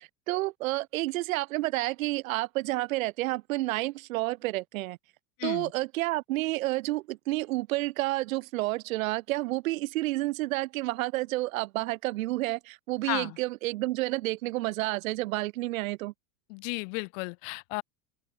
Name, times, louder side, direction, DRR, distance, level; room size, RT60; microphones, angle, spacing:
voice 1, 0.0-5.0 5.4-16.1, right 19 dB, 75° right, 3.2 m, -30 dB
voice 2, 5.4-5.7 13.0-13.4 16.5-17.8, left 33 dB, 60° left, 7.2 m, -34 dB
open air
supercardioid pair, 120°, 41 cm